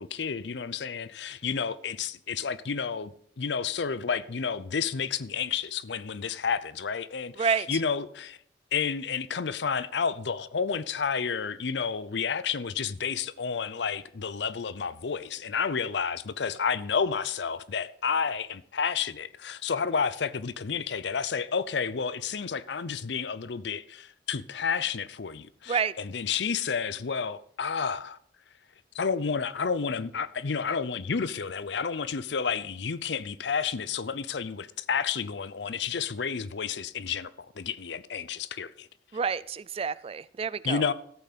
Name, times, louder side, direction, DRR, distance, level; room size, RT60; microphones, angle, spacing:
voice 1, 0.0-8.4 8.7-28.2 28.9-38.9 40.6-40.9, left 6 dB, 65° left, 0.6 m, -30 dB
voice 2, 7.4-7.7 25.7-25.9 39.1-40.9, right 6 dB, 30° right, 0.3 m, -29 dB
14.0 x 8.5 x 4.1 m
head